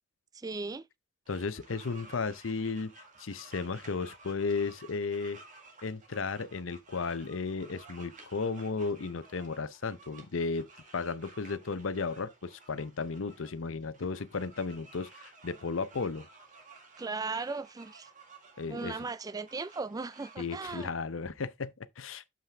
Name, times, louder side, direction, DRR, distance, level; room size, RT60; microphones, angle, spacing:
voice 1, 0.3-0.9 17.0-18.1 18.7-20.9, right 4 dB, 20° right, 0.3 m, -37 dB
sound 1, 1.2-20.5, right 3 dB, 40° right, 1.9 m, -55 dB
voice 2, 1.3-2.9 3.2-5.4 5.8-10.7 10.9-16.3 18.6-19.0 20.4-22.2, left 4 dB, 80° left, 0.7 m, -34 dB
7.4 x 5.8 x 3.4 m
head